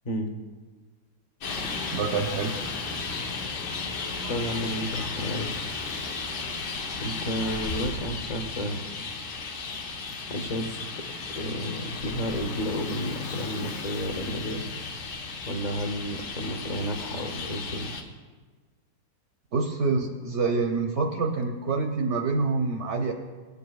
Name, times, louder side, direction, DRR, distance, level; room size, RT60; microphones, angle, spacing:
voice 1, 0.0-0.4 4.3-5.5 7.0-8.8 10.3-10.9 11.3-14.7 15.4-17.9, equal, 40° left, 6 dB, 0.6 m, -31 dB
Traffic noise roadway noise, 1.4-18.0, left 4 dB, 80° left, 1.6 m, -34 dB
voice 2, 1.9-2.5 19.5-23.1, right 4 dB, 60° right, 3 dB, 0.8 m, -26 dB
16.0 x 8.4 x 2.3 m, 1.4 s
omnidirectional pair, 1.8 m